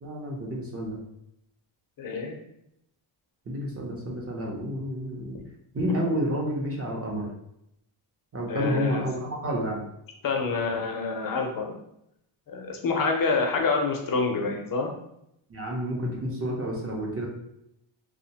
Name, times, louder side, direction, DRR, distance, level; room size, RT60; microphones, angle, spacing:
voice 1, 0.0-1.0 3.5-5.4 5.7-7.3 8.3-9.8 15.5-17.3, equal, 30° right, -1 dB, 0.6 m, -30 dB
voice 2, 2.0-2.4 5.2-5.3 8.5-9.0 10.2-11.7 12.5-14.9, left 4 dB, 45° left, 2 dB, 0.5 m, -27 dB
2.6 x 2.1 x 2.7 m, 0.79 s
cardioid pair, 115°, 50 cm